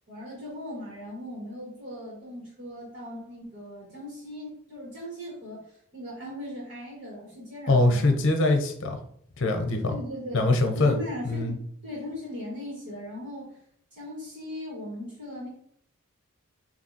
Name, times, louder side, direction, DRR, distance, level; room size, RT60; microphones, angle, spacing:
voice 1, 0.1-8.1 9.9-10.5 10.7-13.6 13.9-15.5, left 1 dB, 45° right, -6 dB, 1.8 m, -39 dB
voice 2, 7.7-9.0 9.4-10.0 10.3-11.0 11.2-11.6, left 2 dB, 55° left, 5 dB, 0.7 m, -23 dB
5.5 x 2.8 x 2.8 m, 0.65 s
head